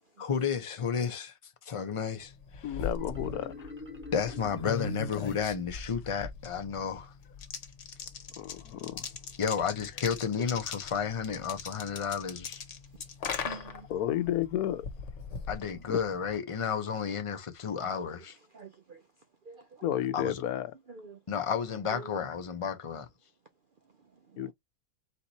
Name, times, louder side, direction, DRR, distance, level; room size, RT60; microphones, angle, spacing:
voice 1, 0.2-2.8 4.1-7.1 9.4-12.6 15.5-18.4 20.1-20.4 21.3-23.1, left 7 dB, 40° left, 0.4 m, -32 dB
sound 1, 2.3-16.4, left 5 dB, 55° left, 1.2 m, -40 dB
voice 2, 2.6-3.7 8.4-9.1 13.2-13.3 13.9-14.8 15.9-16.0 19.8-20.7 24.4-24.5, left 12 dB, 85° left, 1.1 m, -32 dB
Marimba xylophone, 3.0-5.7, left 3 dB, 10° right, 0.8 m, -46 dB
voice 3, 12.8-13.9 15.4-15.5 18.0-18.1 18.5-20.3 20.5-21.2 21.8-22.3 23.8-24.5, right 5 dB, 60° right, 0.5 m, -49 dB
4.3 x 2.9 x 4.0 m
omnidirectional pair, 1.6 m